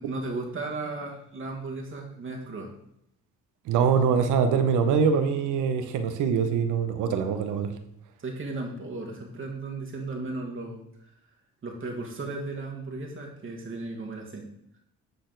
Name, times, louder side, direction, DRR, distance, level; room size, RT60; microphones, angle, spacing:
voice 1, 0.0-2.7 8.2-11.1 11.6-14.5, right 3 dB, 45° right, 0 dB, 1.5 m, -35 dB
voice 2, 3.7-7.7, right 6 dB, 85° right, 9 dB, 0.8 m, -24 dB
8.3 x 4.1 x 3.9 m, 0.77 s
cardioid pair, 90°, 30 cm